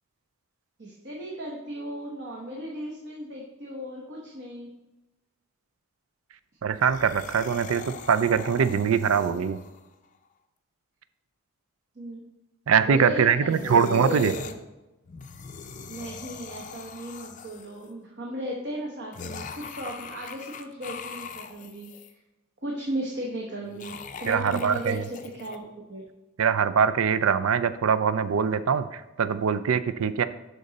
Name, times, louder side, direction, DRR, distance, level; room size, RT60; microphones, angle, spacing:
voice 1, 0.8-4.7 9.2-9.5 11.9-12.2 12.7-14.6 15.8-22.1 22.6-25.6 25.9-26.0, equal, 50° right, -1 dB, 1.1 m, -36 dB
voice 2, 6.6-7.8 8.1-9.6 12.7-14.3 24.3-25.0 26.4-30.2, right 6 dB, 75° right, 13 dB, 0.4 m, -23 dB
sound 1, 6.7-9.8 13.5-14.5 15.0-17.8 19.1-22.1 23.6-25.6, left 4 dB, 35° left, 0.5 m, -40 dB
12.0 x 4.0 x 4.0 m, 1.0 s
head